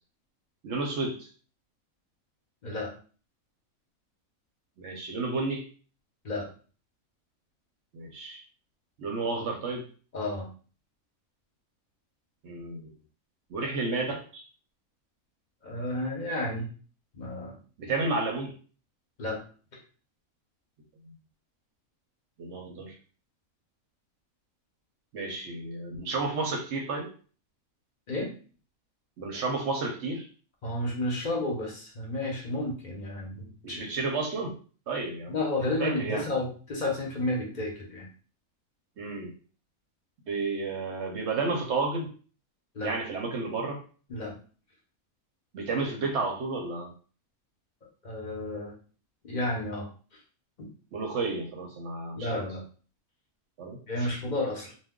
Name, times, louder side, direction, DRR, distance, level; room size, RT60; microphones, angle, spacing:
voice 1, 0.6-1.3 4.8-5.6 7.9-8.4 9.0-9.8 12.4-12.9 13.5-14.4 17.8-18.5 21.0-21.1 22.4-23.0 25.1-27.1 29.2-30.3 33.6-34.5 34.9-35.4 35.8-36.3 39.0-39.3 40.3-42.1 42.8-43.8 45.5-46.9 50.9-52.4 53.6-54.1, right 3 dB, 60° right, 2 dB, 0.8 m, -31 dB
voice 2, 10.1-10.5 15.6-16.7 17.1-17.5 19.2-19.4 28.1-28.3 30.6-33.8 35.3-38.1 42.7-42.9 44.1-44.3 48.0-48.7 49.2-49.9 52.2-52.6 53.9-54.7, left 1 dB, 40° left, -2 dB, 0.7 m, -31 dB
2.3 x 2.2 x 3.5 m, 0.39 s
omnidirectional pair, 1.5 m